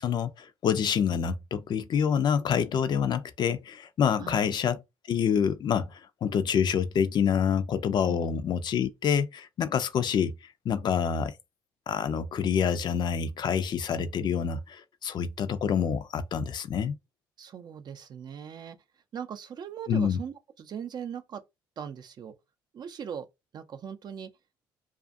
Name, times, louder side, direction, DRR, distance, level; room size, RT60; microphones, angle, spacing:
voice 1, 0.0-4.8 5.1-10.4 10.7-11.3 11.9-16.9 19.9-20.2, left 7 dB, 50° left, 0.4 m, -27 dB
voice 2, 4.2-4.5 8.0-8.3 17.4-18.8 19.1-21.4 21.8-22.3 22.7-23.3 23.5-24.3, right 8 dB, 50° right, 0.4 m, -39 dB
2.4 x 2.4 x 2.5 m
supercardioid pair, 65°, 9 cm